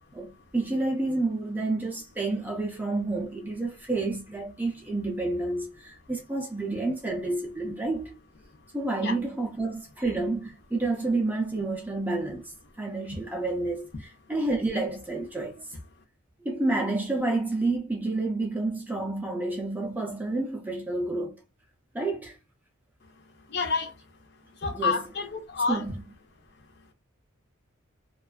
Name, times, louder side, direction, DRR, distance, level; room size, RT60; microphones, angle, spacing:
voice 1, 0.1-8.2 8.7-15.6 16.4-21.4 21.9-22.4 24.7-25.0 25.7-26.0, right 2 dB, 10° right, 0.5 m, -29 dB
voice 2, 23.5-23.9 24.6-25.9, left 4 dB, 50° left, 0.6 m, -28 dB
2.5 x 2.3 x 2.3 m
head